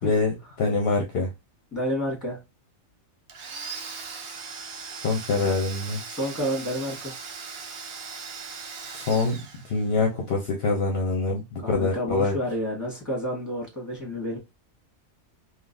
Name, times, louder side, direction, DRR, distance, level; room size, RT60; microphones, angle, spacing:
voice 1, 0.0-1.3 5.0-6.0 8.8-12.4, left 3 dB, 55° left, 0.9 m, -25 dB
voice 2, 1.7-2.4 6.1-7.1 11.6-14.4, equal, 15° left, 1.6 m, -29 dB
Domestic sounds home sounds, 3.3-10.1, right 5 dB, 55° right, 0.8 m, -39 dB
3.7 x 2.6 x 2.5 m
omnidirectional pair, 1.4 m